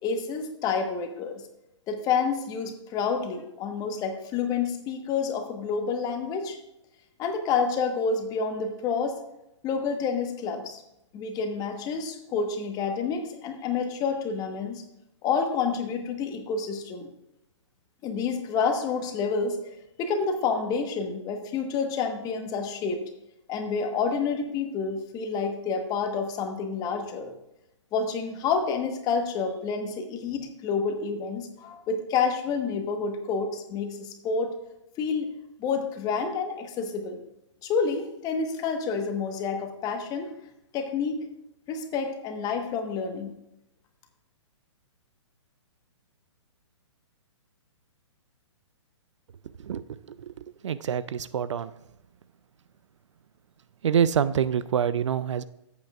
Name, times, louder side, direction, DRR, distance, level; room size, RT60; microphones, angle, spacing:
voice 1, 0.0-1.4 1.9-6.6 7.2-9.2 9.6-10.8 11.1-14.8 15.2-17.1 18.0-19.6 20.0-23.0 23.5-27.3 27.9-34.5 35.0-35.3 35.6-37.2 37.6-40.3 40.7-41.3 41.7-43.3, left 5 dB, 25° left, 5 dB, 1.2 m, -29 dB
voice 2, 49.6-50.3 50.6-51.7 53.8-55.4, right 8 dB, 75° right, 16 dB, 0.4 m, -26 dB
13.5 x 8.2 x 2.4 m, 0.85 s
hypercardioid pair, 130°, 16 cm